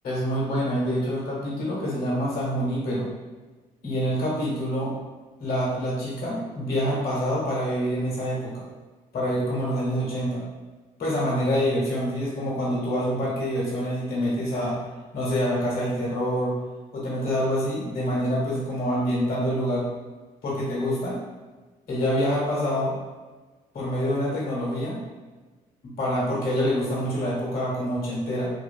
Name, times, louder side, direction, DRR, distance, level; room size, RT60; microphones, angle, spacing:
voice 1, 0.0-3.1 3.8-4.9 5.4-8.6 9.1-10.4 11.0-14.8 15.1-16.5 16.9-19.9 20.4-21.2 21.9-22.9 23.7-25.0 26.0-28.5, equal, 75° left, -6 dB, 1.0 m, -26 dB
2.6 x 2.5 x 2.3 m, 1.3 s
cardioid pair, 90°, 16 cm